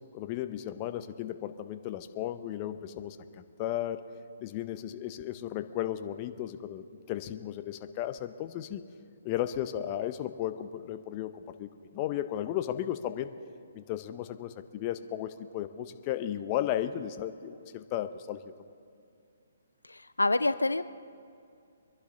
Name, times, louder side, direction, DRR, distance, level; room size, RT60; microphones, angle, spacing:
voice 1, 0.1-4.0 4.4-8.8 9.2-13.3 13.7-18.5, left 11 dB, 30° left, 10 dB, 0.7 m, -35 dB
voice 2, 19.9-20.8, left 2 dB, 90° left, 14 dB, 0.4 m, -27 dB
24.0 x 11.5 x 3.8 m, 2.4 s
figure-of-eight pair, 135°, 0 cm